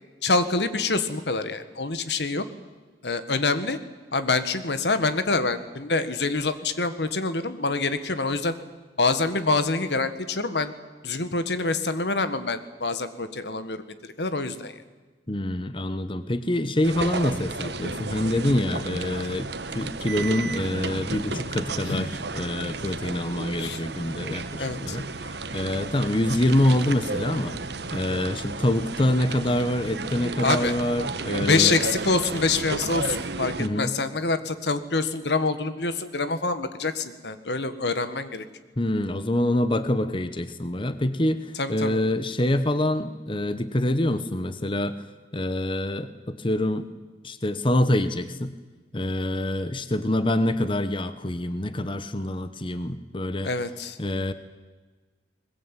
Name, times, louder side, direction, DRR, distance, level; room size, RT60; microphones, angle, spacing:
voice 1, 0.2-2.5 3.0-3.8 4.1-8.6 9.0-10.7 11.0-14.8 21.3-21.4 21.9-22.1 23.6-23.8 24.6-25.0 30.4-30.8 31.5-38.5 41.6-42.0 53.4-54.0, left 3 dB, 75° left, 11 dB, 1.6 m, -26 dB
voice 2, 15.3-31.7 33.6-34.0 38.8-45.0 45.3-46.9 47.2-48.5 48.9-53.5 54.0-54.3, left 1 dB, 30° left, 11 dB, 1.0 m, -26 dB
sound 1, 16.8-33.7, right 3 dB, 75° right, 1.3 m, -32 dB
21.5 x 21.0 x 9.1 m, 1.3 s
head